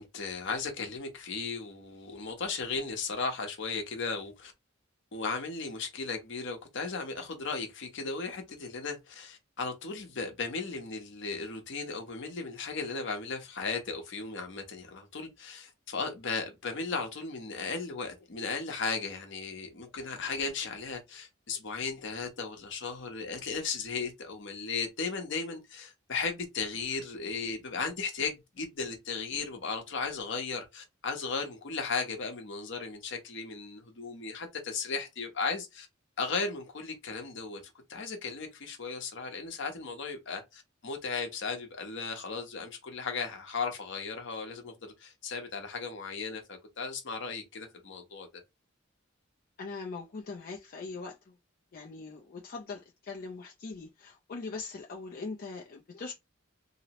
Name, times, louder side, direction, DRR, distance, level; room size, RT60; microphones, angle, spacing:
voice 1, 0.0-4.5 5.1-35.9 36.2-48.3, left 4 dB, 65° left, 0.8 m, -36 dB
voice 2, 49.6-51.3 51.7-56.1, left 4 dB, 45° left, 0.4 m, -41 dB
2.8 x 2.0 x 2.8 m
head